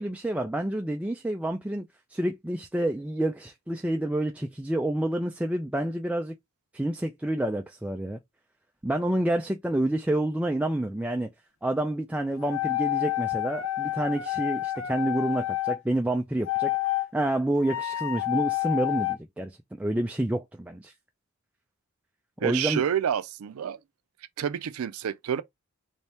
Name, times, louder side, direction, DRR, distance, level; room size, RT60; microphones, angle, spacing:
voice 1, 0.0-1.8 2.1-6.3 6.7-8.2 8.8-11.3 11.6-16.7 17.1-20.9 22.4-22.8, right 1 dB, 5° right, 0.3 m, -28 dB
sound 1, 12.4-15.8 16.4-17.1 17.6-19.2, left 16 dB, 75° left, 0.8 m, -29 dB
voice 2, 22.4-23.8 24.4-25.4, right 9 dB, 90° right, 0.4 m, -28 dB
3.4 x 2.7 x 4.2 m
head